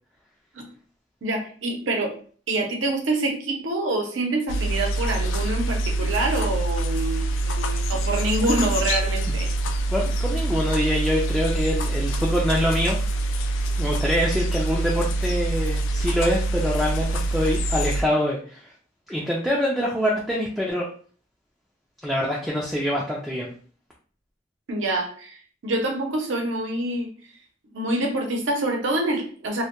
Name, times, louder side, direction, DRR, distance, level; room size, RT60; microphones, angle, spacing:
voice 1, 1.2-2.2 2.5-9.5 24.7-27.1 27.7-29.6, right 2 dB, 85° right, 2 dB, 0.6 m, -26 dB
sound 1, 4.5-18.0, right 2 dB, 85° left, 0.3 m, -25 dB
voice 2, 9.9-13.0 13.8-18.7 19.1-20.9 22.0-23.5, equal, ahead, -3 dB, 0.3 m, -25 dB
2.1 x 2.1 x 2.8 m, 0.44 s
head